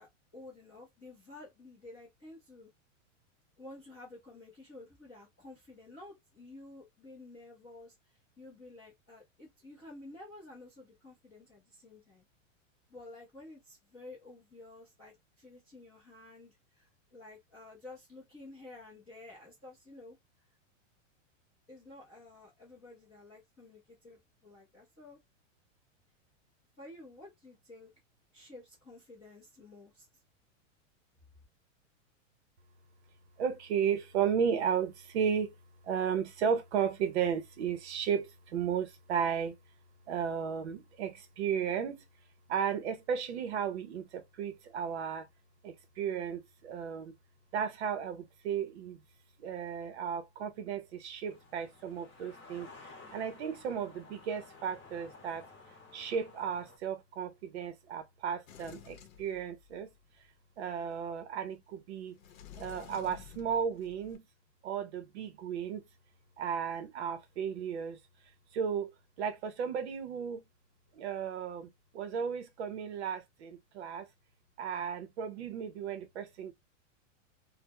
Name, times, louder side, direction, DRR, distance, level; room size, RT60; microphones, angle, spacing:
voice 1, 0.0-2.7 3.6-7.9 8.4-12.2 12.9-20.2 21.7-25.2 26.8-27.9 28.3-30.1, left 2 dB, 10° left, 0.4 m, -52 dB
voice 2, 33.4-35.5 35.8-39.5 40.1-42.0 42.5-45.3 45.6-47.2 47.5-49.0 49.4-52.7 53.1-55.4 55.9-59.9 60.6-62.2 62.6-64.2 64.6-65.8 66.4-68.0 68.5-68.9 69.2-70.4 70.9-74.1 74.6-76.5, right 7 dB, 55° right, 0.6 m, -34 dB
sound 1, 51.3-56.8, left 3 dB, 25° left, 0.8 m, -54 dB
Sliding door, 58.5-60.0 62.1-64.2, left 9 dB, 80° left, 0.7 m, -52 dB
2.2 x 2.0 x 2.8 m
supercardioid pair, 180°, 39 cm